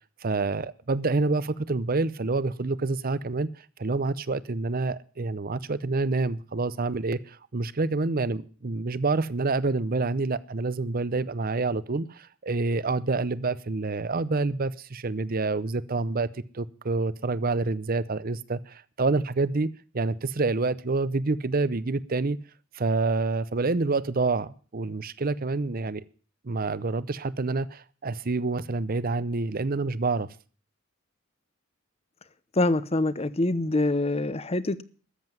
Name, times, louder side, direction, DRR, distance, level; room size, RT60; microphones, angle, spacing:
voice 1, 0.2-3.5 3.8-22.4 22.7-26.0 26.4-30.3, right 3 dB, 45° right, 0.7 m, -27 dB
voice 2, 32.5-34.8, left 2 dB, 30° left, 0.8 m, -25 dB
13.5 x 7.8 x 9.0 m
head